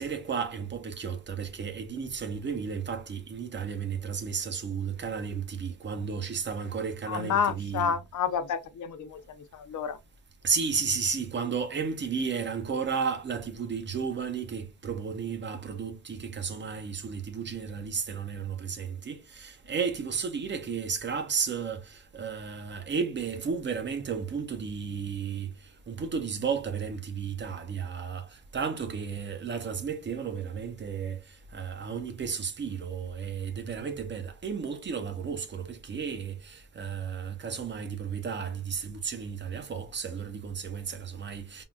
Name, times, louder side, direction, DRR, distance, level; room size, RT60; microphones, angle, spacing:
voice 1, 0.0-7.9 10.4-25.5 25.9-31.2 31.5-41.6, right 6 dB, 30° right, 0.5 m, -33 dB
voice 2, 7.1-10.0, left 7 dB, 55° left, 0.5 m, -30 dB
3.6 x 2.2 x 2.4 m
cardioid pair, 130°, 35 cm